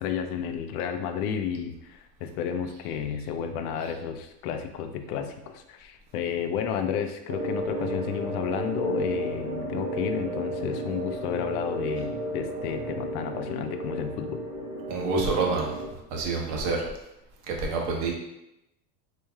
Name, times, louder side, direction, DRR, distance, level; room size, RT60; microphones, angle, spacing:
voice 1, 0.0-14.5, left 8 dB, 65° left, 7 dB, 0.6 m, -32 dB
sound 1, 7.3-15.9, right 1 dB, 75° right, 1.3 m, -33 dB
Keyboard (musical), 7.8-11.3, left 6 dB, 5° left, 0.7 m, -48 dB
voice 2, 14.9-15.7 16.1-16.8 17.5-18.1, right 4 dB, 50° right, 0 dB, 1.0 m, -27 dB
4.2 x 3.2 x 2.2 m, 0.87 s
supercardioid pair, 135°, 49 cm